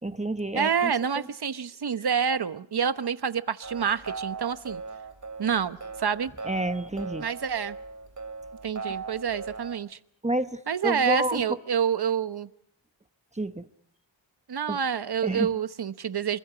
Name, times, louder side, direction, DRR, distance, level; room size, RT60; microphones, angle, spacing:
voice 1, 0.0-1.3 6.4-7.3 8.9-9.0 10.2-11.6 13.3-13.7 14.7-14.8 15.2-15.5, right 1 dB, 15° right, 10 dB, 0.9 m, -30 dB
voice 2, 0.5-4.8 5.4-6.3 7.2-7.8 8.6-10.0 10.7-12.5 14.5-16.4, right 7 dB, 55° right, 12 dB, 1.0 m, -28 dB
sound 1, 3.6-9.8, right 4 dB, 40° right, 3.0 m, -39 dB
27.0 x 24.0 x 5.0 m, 0.66 s
wide cardioid pair, 100°, 46 cm